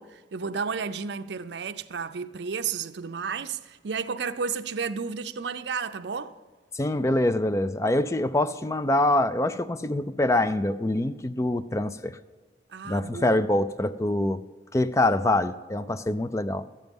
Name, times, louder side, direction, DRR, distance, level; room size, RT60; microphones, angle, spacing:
voice 1, 0.0-6.4 12.7-13.4, right 5 dB, 75° right, 0.5 m, -32 dB
voice 2, 6.7-12.2 12.9-14.4 14.7-16.6, left 1 dB, 15° left, 0.3 m, -25 dB
13.0 x 9.3 x 5.3 m
head